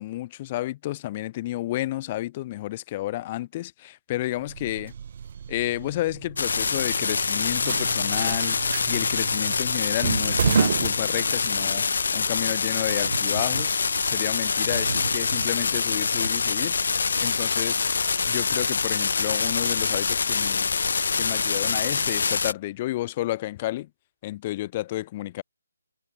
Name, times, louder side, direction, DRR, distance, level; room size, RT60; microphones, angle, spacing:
voice 1, 0.0-4.9 5.5-11.9 12.1-13.8 14.0-16.8 17.2-17.9 18.3-20.7 21.2-23.9 24.2-25.4, left 15 dB, 20° left, 2.1 m, -31 dB
sound 1, 4.4-11.7, right 8 dB, 30° right, 1.4 m, -31 dB
sound 2, 6.4-22.5, left 5 dB, 50° left, 2.8 m, -25 dB
Thunder, 10.1-17.4 18.5-18.6, right 4 dB, 65° right, 4.3 m, -38 dB
hypercardioid pair, 175°, 0 cm